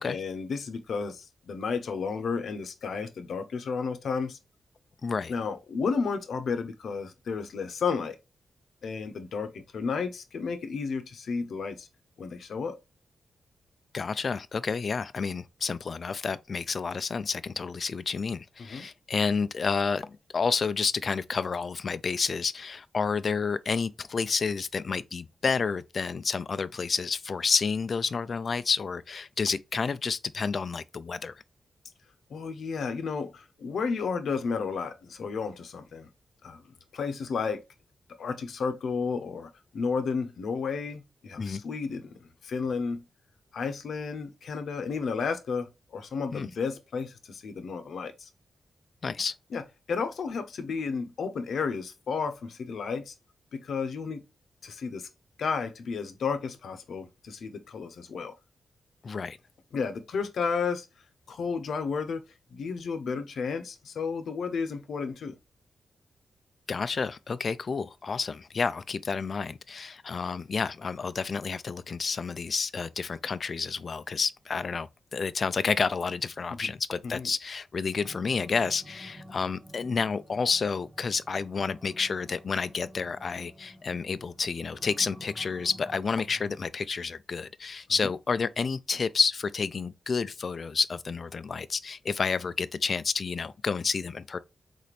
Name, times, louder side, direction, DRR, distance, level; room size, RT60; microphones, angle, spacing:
voice 1, 0.0-4.4 5.3-8.2 8.8-11.9 12.2-12.8 18.6-18.9 32.3-36.1 36.4-37.7 38.2-43.0 43.5-48.3 49.5-49.6 49.9-53.1 53.5-54.2 54.6-55.1 55.4-58.3 59.7-60.9 61.3-62.2 62.5-65.3 76.6-76.7 77.0-77.3 88.0-88.1, left 5 dB, 80° left, 0.8 m, -32 dB
voice 2, 5.0-5.3 13.9-31.3 41.4-41.6 46.3-46.5 49.0-49.3 59.0-59.4 66.7-94.4, left 5 dB, 55° left, 0.4 m, -30 dB
sound 1, 78.0-86.7, equal, 20° right, 1.2 m, -50 dB
4.2 x 3.9 x 3.2 m
cardioid pair, 70°, 0 cm